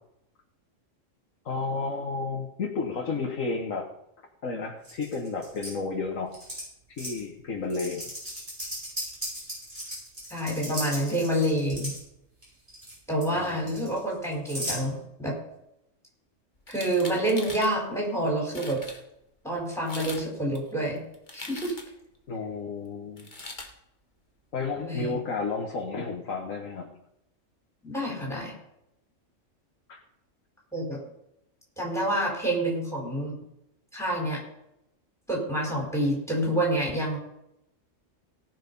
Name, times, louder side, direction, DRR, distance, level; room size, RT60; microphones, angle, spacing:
voice 1, 1.5-3.9 4.4-6.4 7.0-8.1 13.3-13.8 22.3-23.3 24.5-26.9 29.9-30.0, left 4 dB, 85° left, -1 dB, 1.8 m, -32 dB
sound 1, 4.8-5.7 6.3-6.6 7.0-7.2 7.7-12.0 12.4-13.0 13.2-14.8, equal, 30° right, 6.4 m, -36 dB
voice 2, 10.3-11.9 13.1-15.4 16.7-18.8 19.4-21.0 21.3-21.7 24.8-25.2 27.8-28.6 30.7-31.0 31.8-33.4 33.9-34.4 35.3-37.2, right 1 dB, ahead, -1 dB, 4.4 m, -28 dB
sound 2, 16.6-17.7 18.3-18.4 18.5-19.0 19.7-20.3 20.5-22.0 23.2-23.7, left 3 dB, 35° left, 1.6 m, -41 dB
17.5 x 6.2 x 5.4 m, 0.80 s
omnidirectional pair, 1.3 m